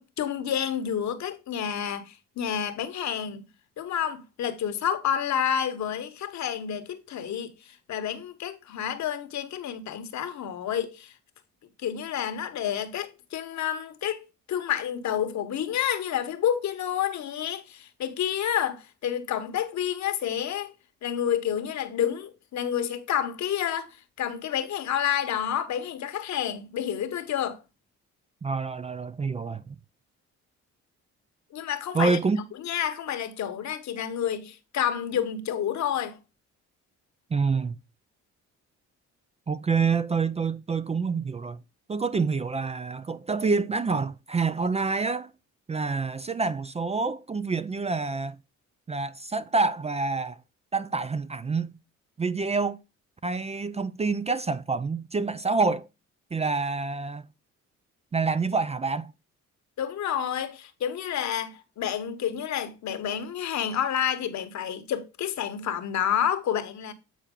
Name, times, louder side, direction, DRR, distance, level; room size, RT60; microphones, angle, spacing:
voice 1, 0.0-3.4 3.8-11.1 11.8-20.7 21.0-27.6 31.5-32.2 32.6-36.2 59.8-66.9, left 9 dB, 65° left, 1.1 m, -29 dB
voice 2, 28.4-29.8 31.9-32.4 37.3-37.7 39.5-41.6 41.9-45.3 45.7-48.4 48.9-50.4 50.7-51.8 52.2-52.8 53.2-55.9 56.3-57.3 58.1-59.1, right 4 dB, 20° right, 0.4 m, -27 dB
8.3 x 4.4 x 3.7 m
cardioid pair, 90°, 30 cm